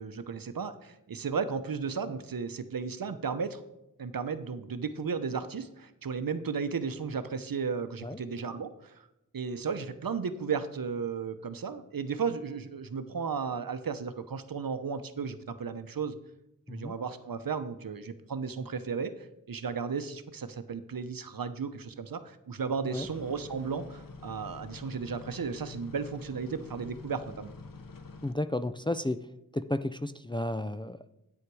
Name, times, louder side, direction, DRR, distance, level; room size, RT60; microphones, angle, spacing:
voice 1, 0.0-3.6 4.0-8.9 9.3-16.1 16.7-27.5, right 5 dB, 75° right, 10 dB, 0.8 m, -34 dB
sound 1, 22.9-28.3, left 4 dB, 75° left, 0.9 m, -47 dB
voice 2, 28.2-29.2 29.5-31.0, left 1 dB, 15° left, 11 dB, 0.4 m, -32 dB
9.8 x 8.8 x 4.7 m, 0.88 s
wide cardioid pair, 65°, 34 cm